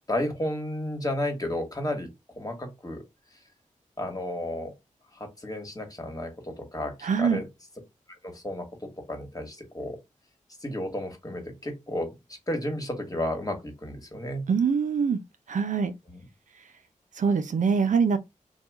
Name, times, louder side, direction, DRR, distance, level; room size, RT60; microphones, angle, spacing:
voice 1, 0.1-2.1 2.4-3.0 4.0-4.7 5.1-7.5 8.2-10.0 10.6-12.1 12.5-14.5 16.1-16.2, left 1 dB, 25° left, 1.4 m, -32 dB
voice 2, 7.0-7.4 14.5-15.2 15.5-15.9 17.2-18.2, right 6 dB, 70° right, 0.5 m, -23 dB
2.9 x 2.3 x 3.5 m
cardioid pair, 45°, 14 cm